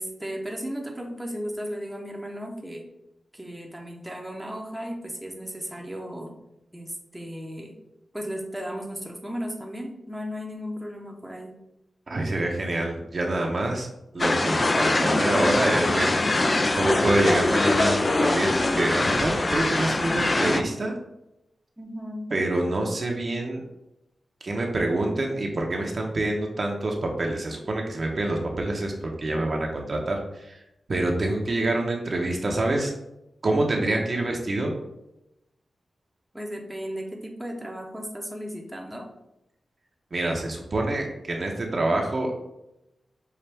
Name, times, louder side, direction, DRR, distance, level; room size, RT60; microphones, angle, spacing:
voice 1, 0.0-2.9 3.3-6.4 6.7-7.7 8.1-11.5 21.8-22.3 36.3-39.1, equal, 10° right, 1 dB, 0.7 m, -35 dB
voice 2, 12.1-13.9 14.1-21.0 22.3-23.6 24.4-28.9 29.2-30.6 30.9-32.9 33.4-34.7 40.1-42.3, right 2 dB, 55° right, 1 dB, 0.8 m, -26 dB
sound 1, 14.2-20.6, left 2 dB, 40° left, 0.4 m, -23 dB
5.6 x 2.4 x 3.4 m, 0.88 s
cardioid pair, 50°, 0 cm